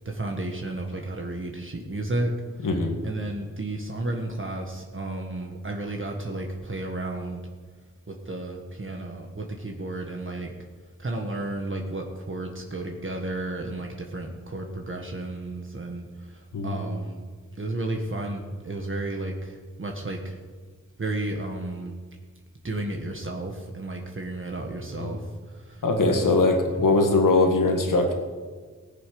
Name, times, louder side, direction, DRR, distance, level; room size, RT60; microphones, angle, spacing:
voice 1, 0.0-2.3 2.6-2.7 3.0-7.4 8.1-10.5 11.0-17.2 17.6-20.4 21.0-22.0 22.6-26.8, right 2 dB, 40° right, 1 dB, 1.6 m, -33 dB
voice 2, 2.6-2.9 16.5-16.8 25.0-25.1 25.8-28.1, left 3 dB, 80° left, 3 dB, 1.9 m, -21 dB
18.5 x 7.5 x 5.3 m, 1.5 s
cardioid pair, 60°, 32 cm